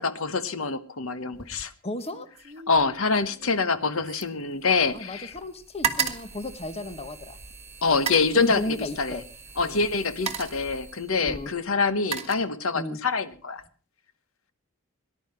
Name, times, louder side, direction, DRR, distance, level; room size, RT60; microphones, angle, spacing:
voice 1, 0.0-1.7 2.7-5.3 7.8-9.2 9.6-13.6, left 4 dB, 65° left, 12 dB, 1.1 m, -25 dB
sound 1, 1.3-1.7 2.0-5.1 5.4-7.3 7.9-8.4 9.4-9.6 10.0-10.7 11.6-12.9 13.3-13.7, right 6 dB, 30° right, 1.4 m, -34 dB
voice 2, 1.8-2.3 4.9-7.4 8.3-9.2 9.6-9.9 11.2-11.5 12.7-13.0, left 1 dB, 30° left, 12 dB, 1.0 m, -34 dB
sound 2, 3.0-3.1 4.5-12.4, right 2 dB, 10° right, 2.5 m, -47 dB
19.0 x 11.5 x 5.7 m, 0.41 s
head